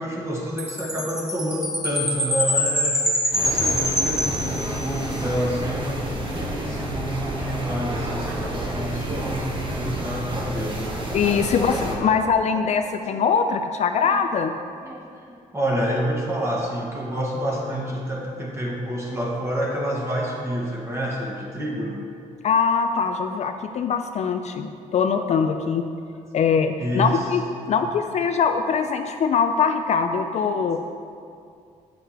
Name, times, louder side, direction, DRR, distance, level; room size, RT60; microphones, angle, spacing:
voice 1, 0.0-3.1 3.4-10.9 11.5-12.2 12.5-12.6 13.1-13.2 14.0-14.2 14.8-22.0 26.3-26.4 26.8-27.2, equal, 20° right, -3 dB, 1.7 m, -28 dB
Chime, 0.6-5.1, left 1 dB, 5° right, 1.2 m, -25 dB
sound 1, 3.3-12.0, right 1 dB, 35° right, 1.2 m, -30 dB
voice 2, 11.1-14.5 22.4-25.8 26.3-27.4 27.7-30.8, left 6 dB, 55° left, 7 dB, 0.4 m, -22 dB
8.4 x 6.5 x 3.0 m, 2.3 s
cardioid pair, 90°, 14 cm